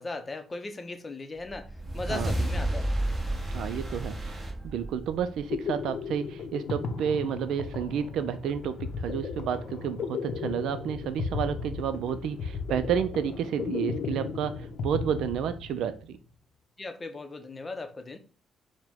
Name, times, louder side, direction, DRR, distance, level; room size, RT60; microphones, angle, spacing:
voice 1, 0.0-2.9 16.8-18.2, left 3 dB, 30° left, 0.6 m, -38 dB
sound 1, 1.5-6.0, right 1 dB, 20° right, 1.2 m, -32 dB
voice 2, 3.5-16.2, right 8 dB, 80° right, 0.3 m, -31 dB
sound 2, 5.2-16.0, left 4 dB, 65° left, 0.6 m, -35 dB
4.8 x 2.2 x 3.5 m
cardioid pair, 90°, 0 cm